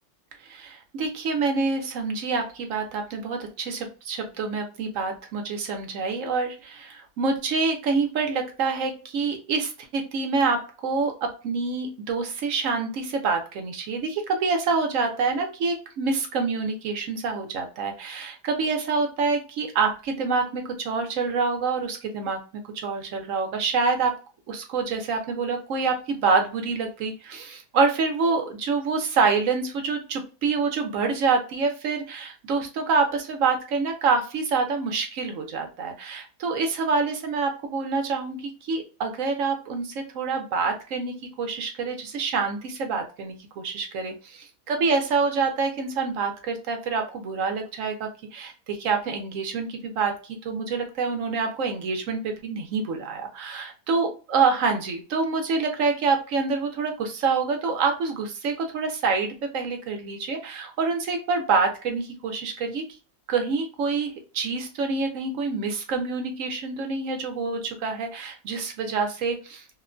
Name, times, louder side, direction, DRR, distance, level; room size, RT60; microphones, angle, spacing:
voice 1, 0.4-22.4 22.7-24.2 24.5-62.9 63.3-69.8, right 4 dB, 65° right, 4 dB, 0.9 m, -26 dB
2.9 x 2.1 x 2.4 m, 0.35 s
omnidirectional pair, 1.6 m